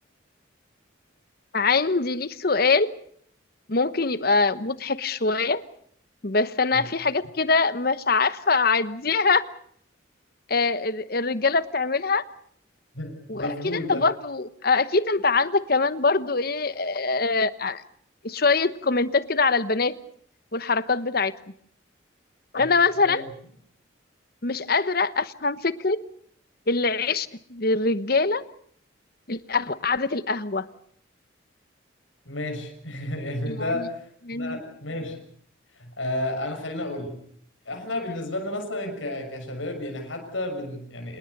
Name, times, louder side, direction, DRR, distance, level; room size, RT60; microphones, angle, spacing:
voice 1, 1.5-2.9 3.7-5.6 6.2-9.4 10.5-12.2 13.3-17.8 18.2-19.9 20.5-21.3 22.5-23.2 24.4-26.0 26.7-28.4 29.3-30.7 33.5-33.9 34.3-34.6, left 4 dB, 50° left, 14 dB, 1.1 m, -23 dB
voice 2, 12.9-14.0 22.6-22.7 23.0-23.2 32.2-35.2 35.7-37.2 37.6-41.2, left 1 dB, 80° left, 4 dB, 6.6 m, -32 dB
27.5 x 20.5 x 6.7 m, 0.62 s
head